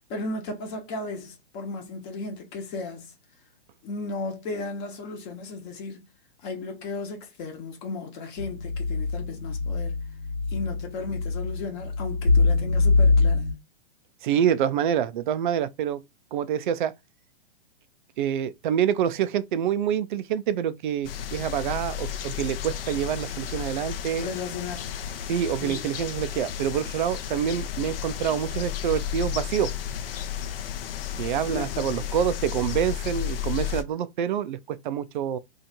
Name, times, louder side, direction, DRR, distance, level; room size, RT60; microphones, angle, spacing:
voice 1, 0.1-3.1 3.8-6.0 6.4-10.0 10.5-13.5 24.2-25.0 25.6-25.9 31.5-32.1, left 3 dB, 30° left, 1.1 m, -35 dB
sound 1, 8.4-13.5, left 3 dB, 90° left, 1.2 m, -24 dB
voice 2, 14.2-16.0 16.3-16.9 18.2-24.3 25.3-29.7 31.2-35.4, right 9 dB, 50° right, 0.5 m, -26 dB
sound 2, 21.0-33.8, left 10 dB, 60° left, 0.7 m, -33 dB
2.8 x 2.5 x 4.2 m
hypercardioid pair, 125°, 32 cm